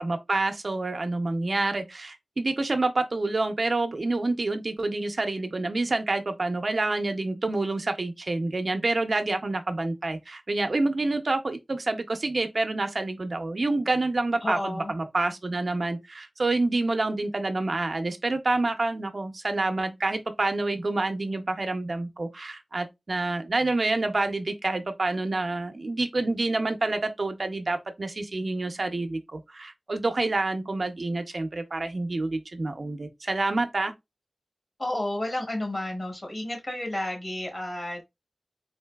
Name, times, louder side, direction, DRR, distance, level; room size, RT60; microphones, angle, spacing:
voice 1, 0.0-33.9, right 2 dB, 55° right, 0.5 m, -28 dB
voice 2, 14.4-14.9 34.8-38.0, left 1 dB, 50° left, 1.5 m, -31 dB
3.8 x 2.7 x 2.2 m
wide cardioid pair, 80°, 0 cm